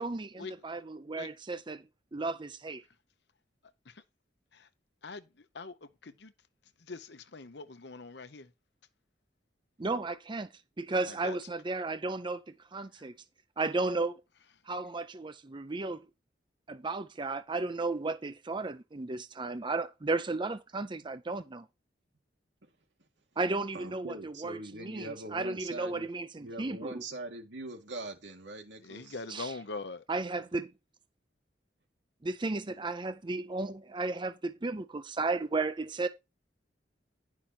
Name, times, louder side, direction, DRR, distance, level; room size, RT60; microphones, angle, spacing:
voice 1, 0.0-1.8 2.1-2.8 9.8-10.5 10.8-12.4 12.7-13.1 13.6-14.2 14.7-16.0 16.7-21.7 23.4-27.0 29.3-29.5 30.1-30.7 32.2-36.1, right 3 dB, 25° right, 0.6 m, -34 dB
voice 2, 6.9-8.5 11.1-11.4 28.8-30.0, left 3 dB, 70° left, 0.9 m, -42 dB
voice 3, 23.7-26.1 26.4-29.2, right 2 dB, 80° right, 2.2 m, -42 dB
10.5 x 5.9 x 4.3 m
head